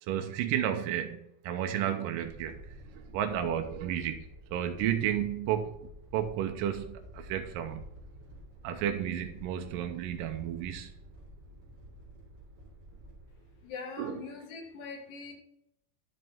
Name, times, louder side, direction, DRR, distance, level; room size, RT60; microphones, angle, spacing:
voice 1, 0.0-5.8 6.1-7.9 8.6-11.0 14.0-14.2, right 10 dB, 80° right, 5 dB, 2.1 m, -32 dB
sound 1, 2.2-13.7, right 1 dB, 35° right, 2.1 m, -50 dB
voice 2, 13.6-15.3, left 5 dB, 70° left, 2 dB, 3.1 m, -42 dB
10.5 x 5.1 x 3.6 m, 0.78 s
omnidirectional pair, 4.4 m